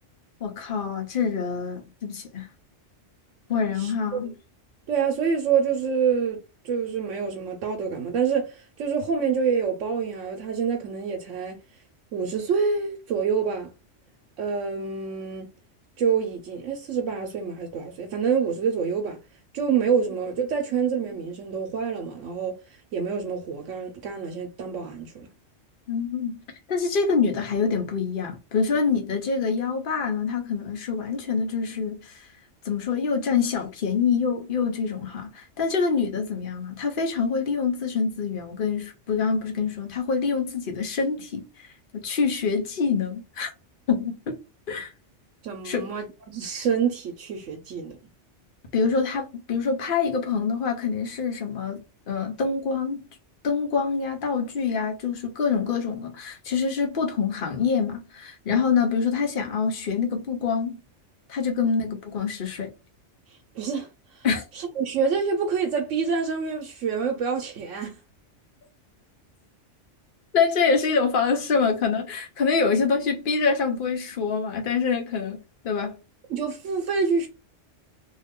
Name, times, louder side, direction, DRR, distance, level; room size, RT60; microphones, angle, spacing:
voice 1, 0.4-2.5 3.5-4.3 25.9-26.4 26.7-32.3 32.6-41.7 41.9-43.5 43.9-44.4 44.7-44.9 45.6-45.9 48.7-53.0 53.4-60.8 61.3-62.7 64.2-64.4 70.3-75.4 75.6-76.0, left 5 dB, 50° left, 0.9 m, -25 dB
voice 2, 3.8-4.2 4.9-11.6 12.1-13.7 14.4-15.5 16.0-19.2 19.5-22.6 22.9-25.3 45.4-47.9 61.6-61.8 63.5-64.3 64.5-68.0 76.3-77.3, right 6 dB, 85° right, 1.0 m, -27 dB
2.7 x 2.3 x 3.5 m
omnidirectional pair, 1.3 m